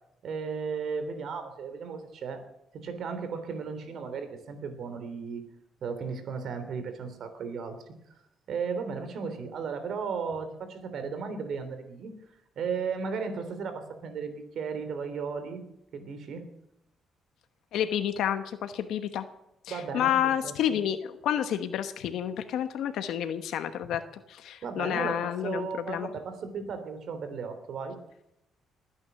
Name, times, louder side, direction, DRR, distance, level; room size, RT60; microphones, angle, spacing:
voice 1, 0.2-2.4 2.7-5.4 5.8-7.9 8.5-12.1 12.5-15.6 15.9-16.4 19.7-20.1 20.4-20.5 24.6-28.0, right 5 dB, 65° right, 9 dB, 3.3 m, -35 dB
voice 2, 17.7-19.3 19.6-24.0 24.3-26.1, left 10 dB, 80° left, 9 dB, 1.1 m, -29 dB
20.5 x 9.6 x 7.0 m, 0.83 s
cardioid pair, 90°, 0 cm